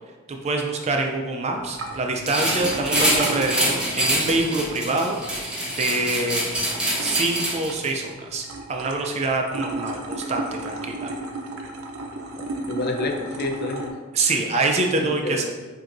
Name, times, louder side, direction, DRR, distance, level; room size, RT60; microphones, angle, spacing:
voice 1, 0.3-6.4 7.0-11.1 14.1-15.4, right 2 dB, 30° right, 3 dB, 0.4 m, -25 dB
sound 1, 1.6-13.9, right 2 dB, 70° right, 0.6 m, -35 dB
sound 2, 2.3-7.9, right 1 dB, 5° right, 0.8 m, -25 dB
voice 2, 12.4-13.9 15.0-15.4, left 2 dB, 45° left, 3 dB, 0.5 m, -29 dB
7.5 x 2.7 x 2.6 m, 1.3 s
head